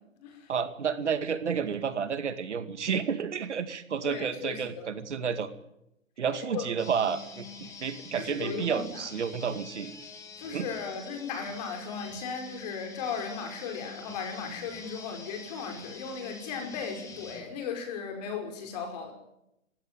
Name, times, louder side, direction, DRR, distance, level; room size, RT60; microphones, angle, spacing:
voice 1, 0.5-5.5 6.2-9.9 10.5-10.7, right 7 dB, 60° right, 10 dB, 2.3 m, -31 dB
voice 2, 4.0-4.9 6.3-6.7 8.2-9.0 10.4-19.1, left 6 dB, 30° left, 5 dB, 5.7 m, -36 dB
sound 1, 6.8-17.4, left 4 dB, 10° left, 2.6 m, -46 dB
26.0 x 15.5 x 9.2 m, 0.84 s
hypercardioid pair, 155°, 40 cm